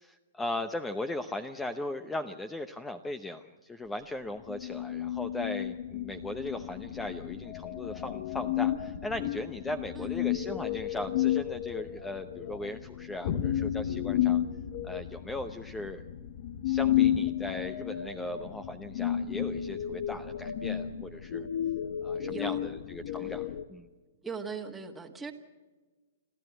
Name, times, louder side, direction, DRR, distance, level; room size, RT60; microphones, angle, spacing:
voice 1, 0.0-14.4 14.8-16.0 16.6-21.5 22.0-23.9, left 1 dB, 10° left, 11 dB, 0.8 m, -38 dB
sound 1, 4.5-23.6, left 11 dB, 60° left, 1.2 m, -32 dB
voice 2, 22.3-22.6 23.2-23.4 24.2-25.3, right 5 dB, 5° right, 0 dB, 1.7 m, -40 dB
29.0 x 12.5 x 8.0 m, 1.3 s
hypercardioid pair, 130°, 0 cm